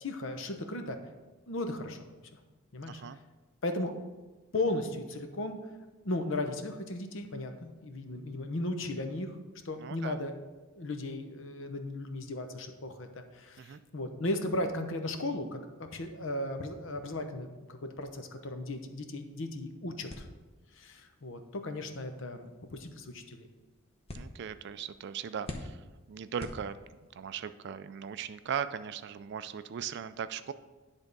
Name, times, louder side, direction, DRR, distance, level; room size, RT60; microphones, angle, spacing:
voice 1, 0.0-1.0 1.5-2.0 2.3-2.4 2.7-3.0 3.6-3.9 4.5-5.6 6.0-9.4 9.6-10.3 10.7-15.6 15.9-20.3 20.7-23.5, left 2 dB, 60° left, 6 dB, 0.8 m, -36 dB
voice 2, 2.9-3.2 9.8-10.2 13.6-13.8 24.1-26.8 27.1-30.5, right 7 dB, 50° right, 13 dB, 0.3 m, -38 dB
sound 1, 20.1-27.2, left 1 dB, 25° left, 0.7 m, -49 dB
10.5 x 3.5 x 5.3 m, 1.2 s
head